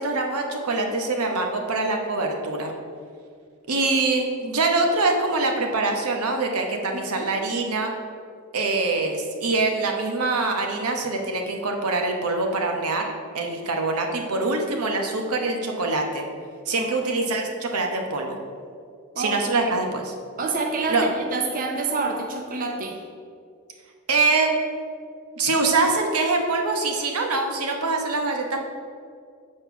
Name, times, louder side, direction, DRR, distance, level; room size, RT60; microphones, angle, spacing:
voice 1, 0.0-2.7 3.7-7.9 8.5-16.2 16.7-18.4 19.2-20.1 20.9-21.1 24.1-24.5 25.4-28.6, right 3 dB, 90° right, 3 dB, 1.0 m, -24 dB
voice 2, 19.1-19.7 20.4-23.0, right 3 dB, 40° right, 2 dB, 0.6 m, -27 dB
7.5 x 4.4 x 5.9 m, 2.2 s
head